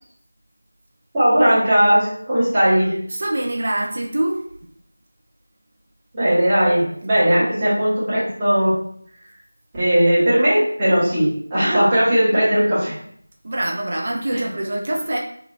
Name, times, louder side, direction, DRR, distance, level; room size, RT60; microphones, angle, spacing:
voice 1, 1.1-3.0 6.1-8.8 9.8-12.9 14.3-14.5, equal, 15° right, -12 dB, 1.0 m, -18 dB
voice 2, 3.1-4.4 13.4-15.2, right 1 dB, 40° right, -1 dB, 0.4 m, -24 dB
2.8 x 2.3 x 2.5 m, 0.65 s
figure-of-eight pair, 170°, 0 cm